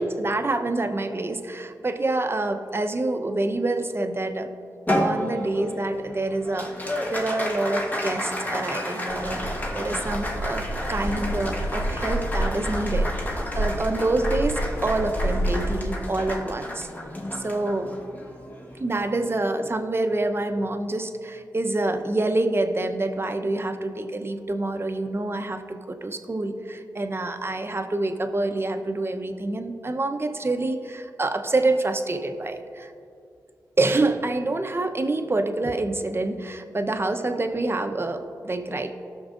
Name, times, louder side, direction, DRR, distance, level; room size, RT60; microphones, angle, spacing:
voice 1, 0.0-4.5 5.0-16.9 17.3-17.9 18.8-32.9 33.8-38.9, right 2 dB, 35° right, 6 dB, 0.8 m, -27 dB
Applause, 4.9-19.5, left 1 dB, 25° left, 1.4 m, -32 dB
sound 1, 9.1-15.8, right 1 dB, 40° left, 1.5 m, -29 dB
16.0 x 6.3 x 2.5 m, 2.5 s
supercardioid pair, 40°, 7 cm